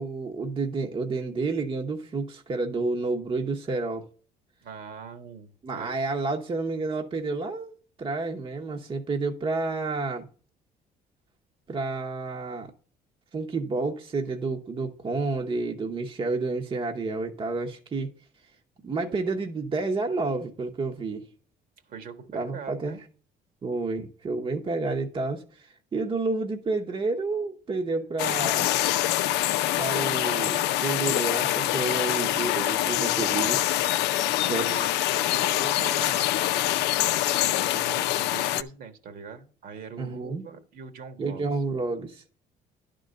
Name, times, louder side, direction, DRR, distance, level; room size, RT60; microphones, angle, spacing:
voice 1, 0.0-4.1 5.6-10.3 11.7-12.7 13.3-18.1 18.8-21.2 22.3-22.9 23.6-28.7 29.8-33.7 34.5-34.9 40.0-40.5 41.2-42.2, right 3 dB, 30° right, 0.9 m, -30 dB
voice 2, 4.6-6.0 21.9-22.3 22.5-23.0 34.4-41.4, right 6 dB, 60° right, 1.4 m, -42 dB
sound 1, 28.2-38.6, left 14 dB, 85° left, 0.5 m, -25 dB
10.5 x 3.8 x 6.6 m
cardioid pair, 110°, 17 cm